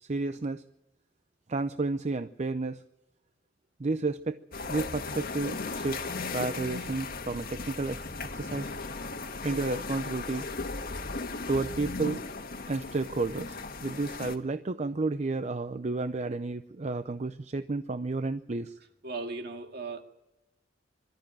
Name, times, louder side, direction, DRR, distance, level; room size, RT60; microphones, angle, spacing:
voice 1, 0.0-0.6 1.5-2.8 3.8-4.4 4.7-8.0 8.3-8.7 9.4-10.5 11.5-12.2 12.7-18.8, right 3 dB, 40° right, 10 dB, 0.6 m, -31 dB
sound 1, 4.5-14.4, left 3 dB, 55° left, 1.6 m, -37 dB
voice 2, 19.0-20.0, right 3 dB, 60° right, 5 dB, 2.1 m, -37 dB
22.5 x 13.5 x 8.9 m, 0.95 s
head